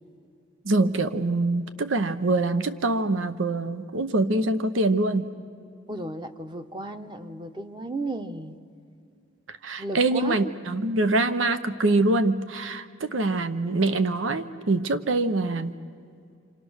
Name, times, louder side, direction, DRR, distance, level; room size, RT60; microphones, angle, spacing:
voice 1, 0.6-5.3 9.6-15.7, right 2 dB, 90° right, 10 dB, 0.9 m, -24 dB
voice 2, 5.9-8.5 9.8-10.5, right 2 dB, 25° right, 7 dB, 0.9 m, -34 dB
28.5 x 26.5 x 6.4 m, 2.4 s
head